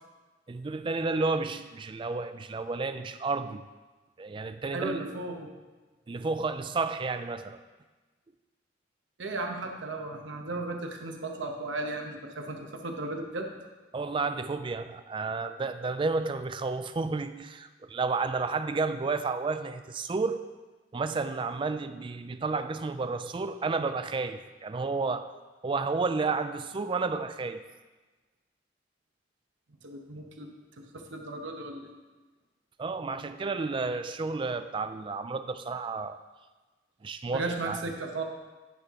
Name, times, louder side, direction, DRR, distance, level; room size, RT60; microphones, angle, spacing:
voice 1, 0.5-3.6 4.2-5.2 6.1-7.6 13.9-20.5 20.9-25.3 25.6-27.6 32.8-36.2 37.0-37.8, right 4 dB, 25° right, 10 dB, 0.3 m, -31 dB
voice 2, 4.7-5.5 9.2-13.5 29.8-30.5 30.8-31.9 37.3-38.2, right 2 dB, 85° right, 3 dB, 0.9 m, -35 dB
9.6 x 3.6 x 5.7 m, 1.2 s
head